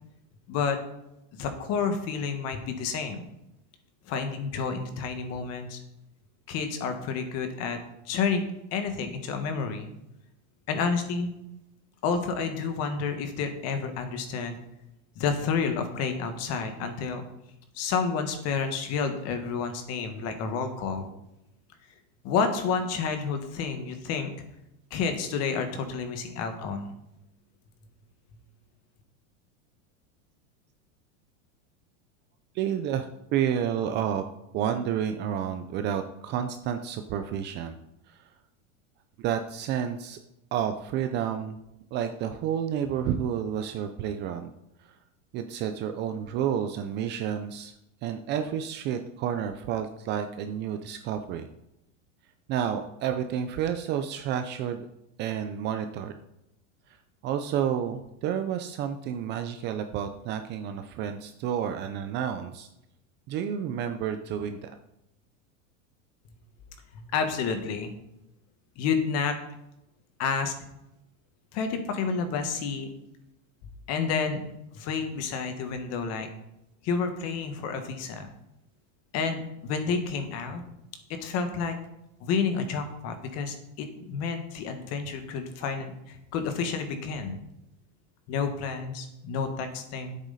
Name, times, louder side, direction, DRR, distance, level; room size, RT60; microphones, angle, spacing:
voice 1, 1.3-3.2 4.1-5.8 6.5-7.8 8.0-8.4 8.7-9.9 10.7-11.3 12.0-14.6 15.1-17.2 17.7-21.1 22.2-24.3 24.9-26.9 66.9-67.9 68.8-69.4 70.2-70.5 71.5-72.9 73.9-74.4 74.7-76.3 76.8-78.3 79.1-80.6 81.1-81.7 82.2-87.4 88.3-90.2, left 5 dB, 40° left, 7 dB, 1.6 m, -30 dB
voice 2, 32.5-33.1 33.3-34.2 34.5-37.8 38.1-38.2 39.2-40.2 40.5-41.6 41.9-44.5 44.8-45.0 45.3-47.7 48.0-51.5 52.5-54.8 55.2-56.1 57.2-62.7 63.3-64.7, right 9 dB, 25° right, 7 dB, 0.5 m, -30 dB
10.0 x 8.2 x 4.2 m, 0.87 s
supercardioid pair, 150°, 40 cm